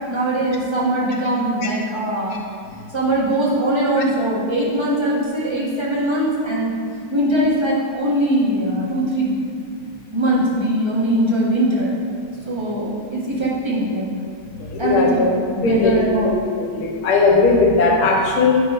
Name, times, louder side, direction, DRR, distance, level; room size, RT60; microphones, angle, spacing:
voice 1, 0.1-2.4 2.9-6.7 7.1-9.3 10.1-11.9 12.4-14.1 14.8-16.4, right 1 dB, 15° right, -7 dB, 1.3 m, -21 dB
voice 2, 14.6-15.3 15.6-16.2 16.4-18.6, left 3 dB, 80° left, 0 dB, 1.8 m, -17 dB
9.5 x 3.5 x 5.3 m, 2.1 s
omnidirectional pair, 2.3 m